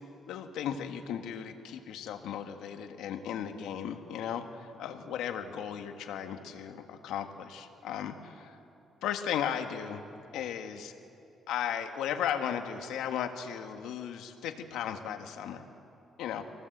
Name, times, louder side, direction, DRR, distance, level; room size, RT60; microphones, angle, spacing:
voice 1, 0.3-8.6 9.0-10.0 10.3-10.9 11.5-15.6 16.2-16.4, left 9 dB, 90° left, 6 dB, 1.5 m, -36 dB
25.0 x 18.0 x 8.0 m, 2.7 s
cardioid pair, 90°, 0 cm